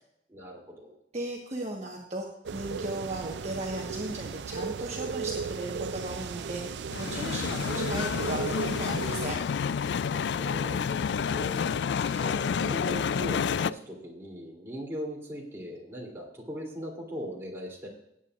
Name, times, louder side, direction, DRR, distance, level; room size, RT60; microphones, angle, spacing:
voice 1, 0.3-1.0 10.1-11.7 12.1-17.9, equal, 15° right, -2 dB, 2.9 m, -39 dB
voice 2, 1.1-2.3 2.5-9.4 11.9-12.3, right 2 dB, 40° right, -1 dB, 1.3 m, -36 dB
sound 1, 2.5-9.3, right 5 dB, 80° right, 0.4 m, -36 dB
sound 2, 6.9-13.7, left 6 dB, 80° left, 0.3 m, -29 dB
18.5 x 8.7 x 2.5 m, 0.78 s
head